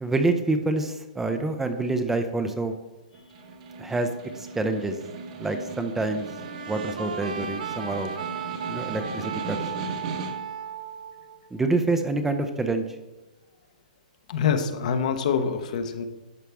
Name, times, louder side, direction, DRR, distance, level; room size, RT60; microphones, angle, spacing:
voice 1, 0.0-2.7 3.8-4.1 4.3-5.0 5.4-6.3 6.7-8.1 8.7-9.6 11.5-12.8, right 2 dB, 5° right, 7 dB, 0.5 m, -26 dB
Snare drum, 3.1-10.6, right 3 dB, 50° right, 1.3 m, -38 dB
sound 1, 6.2-11.7, right 7 dB, 75° right, 0.8 m, -35 dB
voice 2, 14.3-16.0, left 6 dB, 60° left, 7 dB, 1.0 m, -25 dB
11.0 x 5.7 x 3.5 m, 1.1 s
hypercardioid pair, 145°, 4 cm